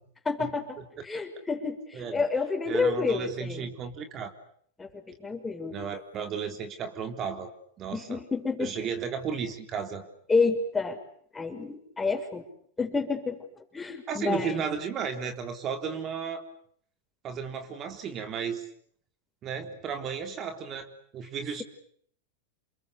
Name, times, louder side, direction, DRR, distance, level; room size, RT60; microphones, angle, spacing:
voice 1, 0.2-0.8 1.0-3.7 4.8-5.8 7.9-8.7 10.3-11.0 11.3-12.4 12.8-13.5 13.7-14.6, left 4 dB, 15° left, 6 dB, 6.1 m, -29 dB
voice 2, 1.9-2.2 2.7-4.3 5.7-7.5 7.8-8.2 8.6-10.0 14.1-16.4 17.2-18.7 19.4-21.6, right 6 dB, 35° right, 7 dB, 3.8 m, -34 dB
29.0 x 22.0 x 8.5 m, 0.64 s
hypercardioid pair, 110°, 0 cm